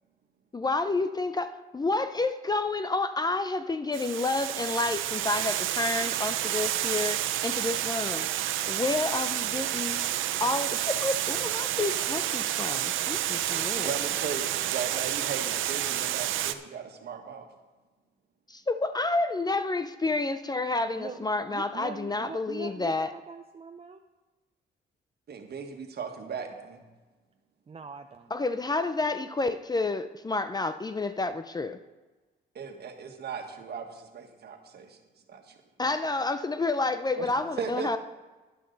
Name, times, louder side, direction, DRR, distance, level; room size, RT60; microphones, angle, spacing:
voice 1, 0.5-8.3 8.7-10.0 10.4-14.1 18.5-23.1 28.3-31.8 35.8-38.0, left 3 dB, 20° left, 11 dB, 0.5 m, -29 dB
Water, 3.9-16.5, right 12 dB, 80° right, 0.6 m, -30 dB
voice 2, 13.7-17.5 25.3-26.8 32.5-35.0 35.3-35.5 37.2-37.3 37.6-38.0, right 6 dB, 55° right, 4 dB, 1.6 m, -37 dB
voice 3, 20.9-24.0 27.7-28.3, right 5 dB, 30° right, 6 dB, 0.6 m, -43 dB
11.0 x 11.0 x 4.0 m, 1.2 s
cardioid pair, 90°, 20 cm